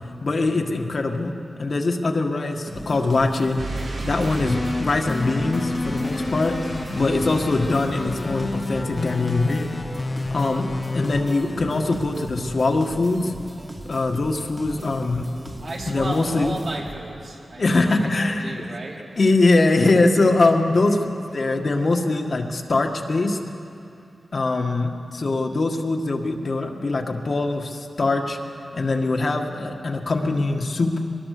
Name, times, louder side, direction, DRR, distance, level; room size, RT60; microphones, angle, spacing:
voice 1, 0.2-1.3 1.6-3.6 4.0-6.6 6.9-9.7 10.3-10.7 10.9-13.3 13.8-15.2 15.9-16.5 17.6-18.6 19.2-21.0 21.3-23.4 24.3-28.4 28.7-31.0, left 3 dB, 55° left, 3 dB, 1.8 m, -22 dB
sound 1, 2.7-17.2, right 1 dB, 25° right, 2.2 m, -38 dB
sound 2, 3.6-8.6, right 2 dB, 85° right, 4.4 m, -35 dB
sound 3, 4.4-12.6, left 2 dB, 35° left, 0.7 m, -30 dB
voice 2, 15.6-19.4 21.2-21.5, right 2 dB, 60° right, -3 dB, 4.1 m, -35 dB
22.5 x 19.5 x 6.8 m, 2.7 s
cardioid pair, 65°, 0 cm